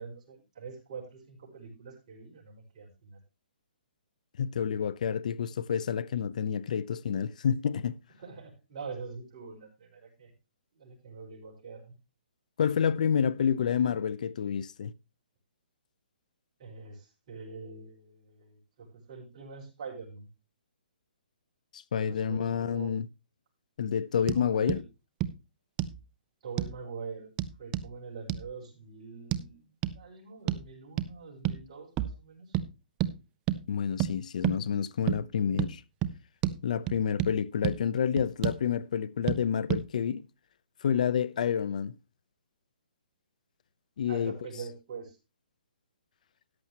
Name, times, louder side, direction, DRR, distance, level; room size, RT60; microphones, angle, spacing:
voice 1, 0.0-3.2 8.2-10.3 10.7-11.9 16.6-20.3 22.0-22.9 24.3-24.8 26.4-27.3 27.6-32.6 44.1-45.2, right 5 dB, 35° right, 5.1 m, -44 dB
voice 2, 4.4-8.0 12.6-14.9 21.7-23.1 23.8-24.8 33.7-35.8 36.6-40.2 40.8-41.9 44.0-44.4, left 7 dB, 50° left, 0.7 m, -29 dB
sound 1, 24.3-24.4 24.7-24.8 25.2-25.3 25.8-26.0 26.6-26.8 27.4-27.9 28.3-28.4 29.3-29.4 29.8-30.0 30.5-30.7 31.0-31.1 31.4-31.6 32.0-32.2 32.5-32.7 33.0-33.1 33.5-33.6 34.0-34.1 34.4-34.6 35.1-35.2 35.6-35.7 36.0-36.1 36.4-36.6 36.9-37.3 37.6-37.8 38.2-38.6 39.3-39.4 39.7-39.8, right 12 dB, 15° right, 0.5 m, -29 dB
14.0 x 9.9 x 3.0 m
hypercardioid pair, 165°, 5 cm